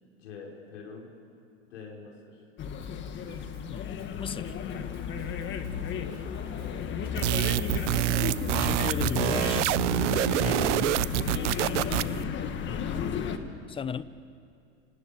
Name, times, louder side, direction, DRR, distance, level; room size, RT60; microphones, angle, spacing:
voice 1, 0.2-1.1 1.7-2.4 6.2-7.1 12.6-13.5, left 5 dB, 85° left, 5.0 m, -46 dB
sound 1, 2.6-13.4, left 7 dB, 30° left, 1.7 m, -33 dB
Drum kit / Drum, 2.8-10.3, right 5 dB, 35° right, 3.0 m, -54 dB
voice 2, 3.7-4.6 8.5-11.0 13.7-14.0, left 7 dB, 15° left, 0.6 m, -37 dB
sound 2, 7.2-12.2, right 17 dB, 85° right, 0.7 m, -27 dB
26.5 x 19.0 x 8.8 m
supercardioid pair, 135°, 35 cm